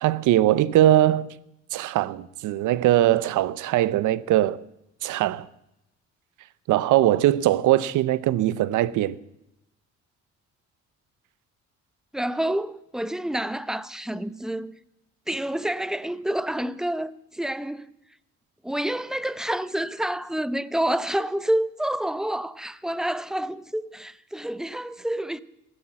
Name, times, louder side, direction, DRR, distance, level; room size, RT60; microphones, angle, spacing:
voice 1, 0.0-1.3 1.7-4.6 5.0-5.5 6.7-9.2, right 13 dB, 85° right, 0.7 m, -21 dB
voice 2, 12.1-14.7 15.3-17.9 18.6-25.4, right 1 dB, ahead, 0.7 m, -28 dB
15.5 x 11.5 x 7.4 m
cardioid pair, 90°, 30 cm